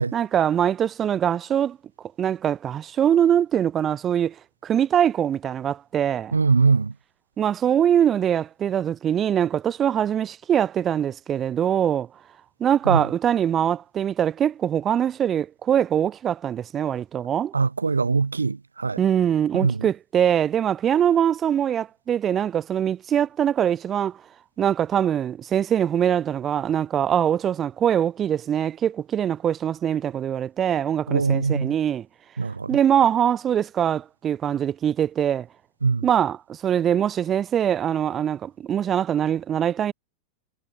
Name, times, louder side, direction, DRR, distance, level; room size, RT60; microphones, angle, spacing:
voice 1, 0.1-1.8 2.2-4.3 4.6-6.3 7.4-12.1 12.6-17.5 19.0-24.2 24.6-32.1 32.7-35.5 36.0-39.9, right 9 dB, 25° right, 0.9 m, -23 dB
voice 2, 6.3-6.9 12.9-13.0 17.5-19.0 19.5-19.8 31.1-31.7 32.4-32.7 35.8-36.1, right 4 dB, 75° right, 0.9 m, -22 dB
figure-of-eight pair, 90°, 0 cm